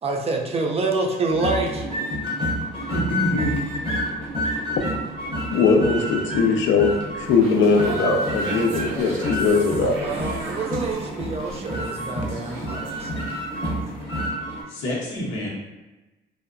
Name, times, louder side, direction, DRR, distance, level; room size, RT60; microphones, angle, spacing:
voice 1, 0.0-1.9 10.0-13.1, right 3 dB, 30° right, 1 dB, 0.4 m, -27 dB
sound 1, 1.3-14.6, equal, 25° left, 0.7 m, -29 dB
voice 2, 2.7-3.6 14.7-15.5, left 1 dB, 90° left, -5 dB, 0.8 m, -27 dB
voice 3, 5.5-10.0, left 4 dB, 70° left, 3 dB, 0.4 m, -20 dB
sound 2, 7.2-13.5 13.8-14.0, right 3 dB, 85° right, 0.7 m, -34 dB
2.7 x 2.1 x 2.4 m, 1.1 s
cardioid pair, 90°, 20 cm